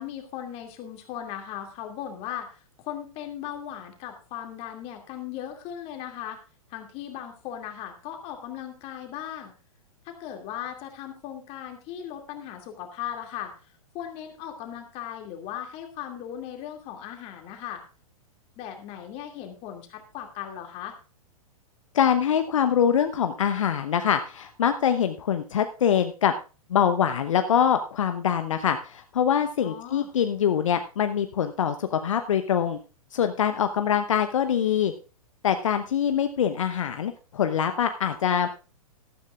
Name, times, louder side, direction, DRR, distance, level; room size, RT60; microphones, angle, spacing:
voice 1, 0.0-6.4 6.7-9.5 10.0-13.5 13.9-17.8 18.6-20.9 29.6-30.1, left 10 dB, 35° left, 4 dB, 2.3 m, -37 dB
voice 2, 21.9-26.3 26.7-32.8 33.1-34.9 35.4-38.5, left 8 dB, 60° left, 8 dB, 0.9 m, -24 dB
15.0 x 13.5 x 2.4 m, 0.35 s
figure-of-eight pair, 105°, 19 cm